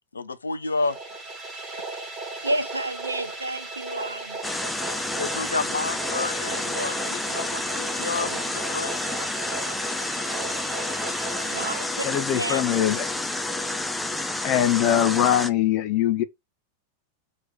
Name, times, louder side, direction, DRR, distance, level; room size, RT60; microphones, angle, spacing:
voice 1, 0.1-1.0 1.7-1.8 2.1-2.5 5.2-9.1, left 3 dB, 75° left, 0.5 m, -31 dB
sound 1, 0.7-12.6, right 3 dB, 15° right, 1.4 m, -36 dB
voice 2, 2.4-4.4 11.5-12.1 12.4-12.7, right 1 dB, 80° right, 0.5 m, -30 dB
sound 2, 4.4-15.5, left 2 dB, 5° left, 0.5 m, -30 dB
voice 3, 12.0-13.1 14.4-16.2, left 11 dB, 40° left, 0.8 m, -22 dB
3.1 x 2.9 x 4.4 m
figure-of-eight pair, 90°, 0 cm